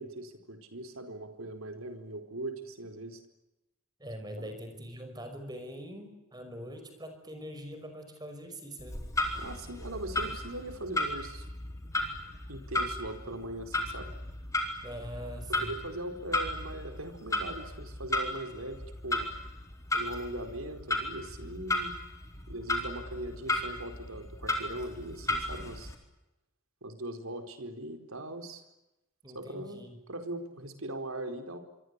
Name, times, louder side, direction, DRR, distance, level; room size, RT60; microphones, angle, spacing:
voice 1, 0.0-3.2 4.3-4.6 9.4-11.5 12.5-14.1 15.5-19.3 19.9-22.0 22.5-25.9 26.8-28.6 29.3-31.6, right 1 dB, 85° right, 6 dB, 4.5 m, -40 dB
voice 2, 4.0-9.0 14.8-15.7 29.2-30.0, equal, 20° right, 7 dB, 5.4 m, -43 dB
Clock, 8.8-25.9, left 1 dB, 15° left, 4.2 m, -35 dB
27.5 x 25.0 x 8.3 m, 0.94 s
head